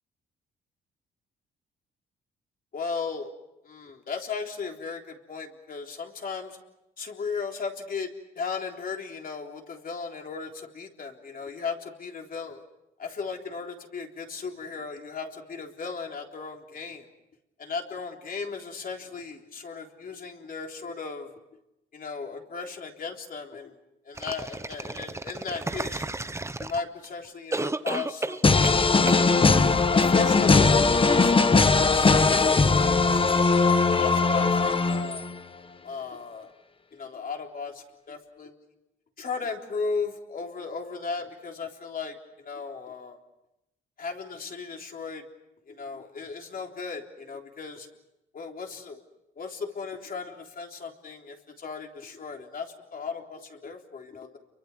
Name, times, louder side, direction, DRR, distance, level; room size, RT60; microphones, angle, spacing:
voice 1, 2.7-3.3 3.6-6.6 7.0-8.1 8.4-12.6 13.0-17.1 17.6-21.3 21.9-23.7 24.1-26.1 26.6-29.5 29.9-32.6 32.8-33.5 34.0-35.3 35.8-36.5 36.9-38.6 39.2-43.2 44.0-45.2 45.7-47.9 48.3-49.0 49.4-54.4, left 5 dB, 45° left, 2 dB, 3.7 m, -36 dB
sound 1, 24.2-27.0 27.5-28.8 29.1-29.2, right 2 dB, 15° right, 1.0 m, -32 dB
sound 2, 28.4-35.4, left 4 dB, 25° left, 1.2 m, -20 dB
30.0 x 24.0 x 6.3 m, 0.90 s
cardioid pair, 90°, 20 cm